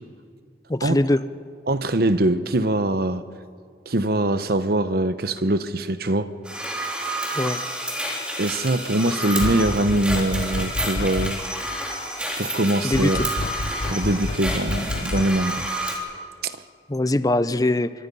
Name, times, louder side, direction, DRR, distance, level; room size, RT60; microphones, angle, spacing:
voice 1, 0.7-1.2 7.3-7.6 12.8-13.3 16.9-17.9, left 1 dB, 20° left, 13 dB, 0.7 m, -22 dB
voice 2, 1.7-3.2 3.9-6.3 8.4-11.4 12.4-13.2 13.9-15.7 16.4-16.6, right 1 dB, 60° right, 12 dB, 1.0 m, -23 dB
sound 1, 6.4-16.0, right 1 dB, 5° right, 3.8 m, -29 dB
sound 2, 9.4-11.6 12.9-15.6, left 2 dB, 65° left, 0.8 m, -29 dB
25.0 x 24.0 x 5.6 m, 2.1 s
head